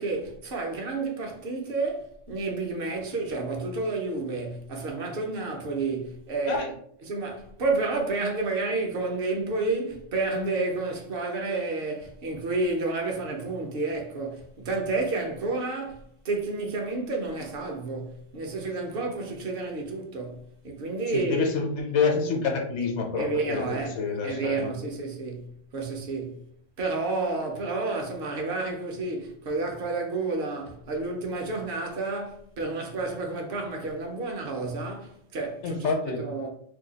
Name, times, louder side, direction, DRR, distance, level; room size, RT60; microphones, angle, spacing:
voice 1, 0.0-6.7 7.1-21.5 23.2-26.4 26.8-36.5, right 3 dB, 55° right, 0.8 m, -30 dB
voice 2, 21.1-24.7 35.6-36.2, left 4 dB, 75° left, 1.0 m, -27 dB
2.7 x 2.2 x 3.9 m
omnidirectional pair, 1.2 m